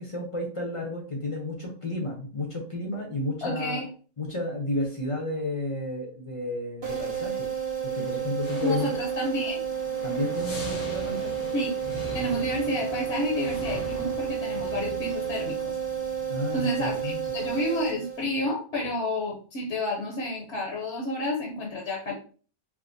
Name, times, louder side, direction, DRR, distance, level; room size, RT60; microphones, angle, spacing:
voice 1, 0.0-3.8 4.2-7.5 7.8-9.0 10.0-11.3 16.3-17.4, left 1 dB, 30° left, -1 dB, 0.7 m, -32 dB
voice 2, 3.4-3.8 8.6-9.6 11.5-11.7 12.1-15.8 16.5-22.1, left 1 dB, 60° left, -2 dB, 1.0 m, -30 dB
sound 1, 6.8-18.5, right 8 dB, 50° right, 1.1 m, -31 dB
sound 2, 7.8-17.5, equal, 90° left, 1.6 m, -41 dB
4.8 x 2.1 x 2.6 m, 0.40 s
omnidirectional pair, 1.3 m